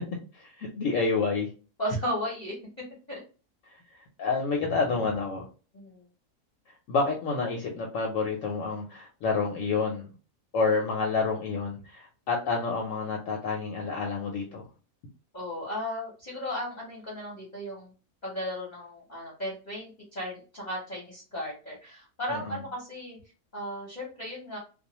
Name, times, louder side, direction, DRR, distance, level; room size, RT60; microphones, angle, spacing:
voice 1, 0.3-1.5 4.2-5.5 6.9-10.1 10.5-14.6 22.3-22.6, left 4 dB, 70° left, 0 dB, 0.9 m, -28 dB
voice 2, 1.8-2.6 3.1-3.2 5.7-6.1 15.3-17.9 18.2-23.2 23.5-24.6, equal, 40° left, -4 dB, 0.7 m, -35 dB
2.4 x 2.2 x 2.9 m, 0.35 s
omnidirectional pair, 1.6 m